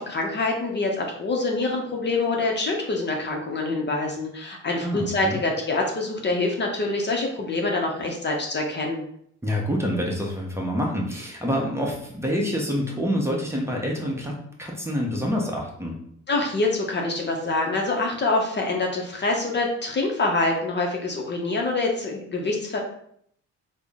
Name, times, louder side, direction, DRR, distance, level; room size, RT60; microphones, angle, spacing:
voice 1, 0.0-9.0 16.3-22.8, left 2 dB, 35° left, 0 dB, 0.7 m, -25 dB
voice 2, 4.8-5.4 9.4-16.0, equal, 10° right, -1 dB, 0.8 m, -27 dB
3.6 x 2.1 x 3.5 m, 0.68 s
cardioid pair, 90°, 30 cm